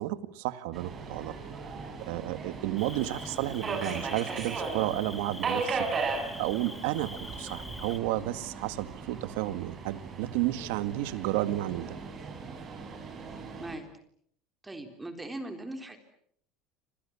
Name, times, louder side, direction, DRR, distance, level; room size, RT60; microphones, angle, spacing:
voice 1, 0.0-1.4 2.1-5.9 6.4-12.0, right 15 dB, 85° right, 12 dB, 2.1 m, -32 dB
Subway metro underground, 0.7-13.8, right 4 dB, 30° right, 7.4 m, -37 dB
Cricket, 2.8-8.0, left 2 dB, 5° left, 1.4 m, -45 dB
voice 2, 14.6-16.0, right 2 dB, 10° right, 7 dB, 3.7 m, -40 dB
30.0 x 27.0 x 7.2 m, 0.68 s
cardioid pair, 140°, 0 cm